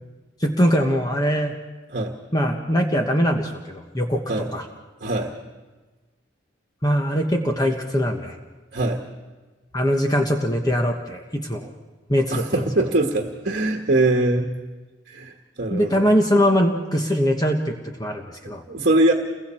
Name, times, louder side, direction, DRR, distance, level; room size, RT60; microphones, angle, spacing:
voice 1, 0.4-1.6 2.3-4.2 4.5-4.6 6.8-8.4 9.7-11.7 12.1-12.6 15.7-18.6, equal, 20° left, 2 dB, 1.2 m, -22 dB
voice 2, 5.0-5.3 8.7-9.0 11.6-11.7 12.3-14.5 15.1-16.1 18.4-19.1, right 2 dB, 55° right, 2 dB, 1.4 m, -22 dB
29.0 x 22.5 x 4.4 m, 1.2 s
head